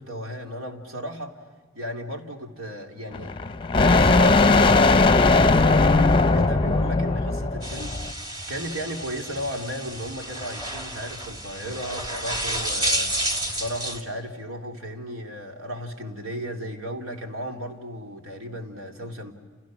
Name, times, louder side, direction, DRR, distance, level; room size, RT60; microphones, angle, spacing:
voice 1, 0.0-1.4 1.7-3.4 3.8-13.1 13.6-19.3, equal, 90° right, 3 dB, 3.1 m, -35 dB
sound 1, 3.1-8.1, left 3 dB, 25° left, 0.7 m, -19 dB
sound 2, 7.6-14.0, right 1 dB, 20° right, 2.4 m, -30 dB
30.0 x 29.5 x 6.3 m, 1.5 s
head